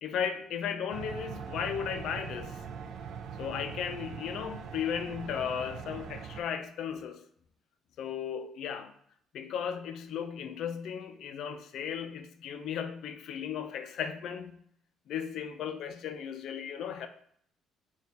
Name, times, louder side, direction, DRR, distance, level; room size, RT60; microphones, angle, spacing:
voice 1, 0.0-2.6 3.4-7.2 8.0-8.9 9.3-14.6 15.1-17.1, left 8 dB, 65° left, 0.4 m, -35 dB
sound 1, 0.9-6.4, right 7 dB, 55° right, 0.3 m, -42 dB
6.2 x 2.2 x 2.7 m
cardioid pair, 140°, 0 cm